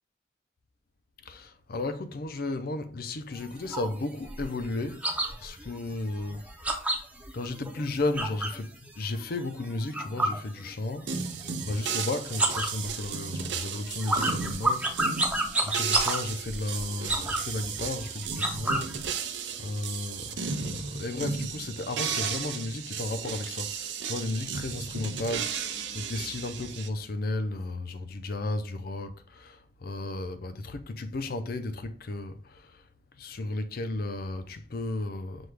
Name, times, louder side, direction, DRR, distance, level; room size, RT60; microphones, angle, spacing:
voice 1, 1.3-5.0 5.4-6.4 7.3-11.1 11.4-14.9 15.6-19.0 19.6-32.7 33.2-35.5, left 2 dB, 55° left, 0.5 m, -34 dB
sound 1, 3.3-8.7 9.0-11.1 11.4-12.0 12.3-19.1, right 2 dB, 10° right, 0.6 m, -31 dB
sound 2, 11.1-26.9, right 6 dB, 85° right, 0.6 m, -34 dB
6.1 x 2.3 x 3.3 m
head